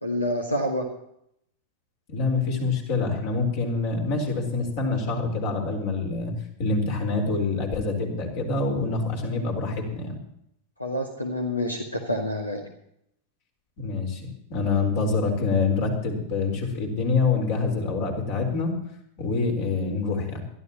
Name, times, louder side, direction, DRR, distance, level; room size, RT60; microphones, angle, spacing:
voice 1, 0.0-0.9 10.8-12.6, left 1 dB, 85° left, 3 dB, 1.8 m, -27 dB
voice 2, 2.1-6.3 6.6-10.2 13.8-18.7 19.2-20.4, left 4 dB, 50° left, 2 dB, 4.2 m, -26 dB
22.5 x 13.0 x 3.0 m, 0.73 s
figure-of-eight pair, 90°, 0 cm